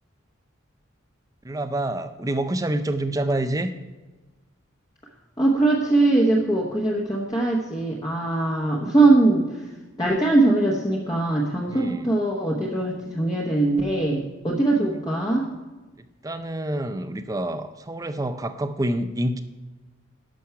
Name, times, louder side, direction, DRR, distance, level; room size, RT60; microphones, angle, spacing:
voice 1, 1.4-3.7 11.7-12.1 14.7-15.0 16.2-19.4, right 1 dB, 15° right, 10 dB, 0.5 m, -27 dB
voice 2, 5.4-9.6 10.0-15.5, right 2 dB, 20° left, -4 dB, 1.1 m, -21 dB
11.5 x 6.3 x 5.7 m, 1.2 s
head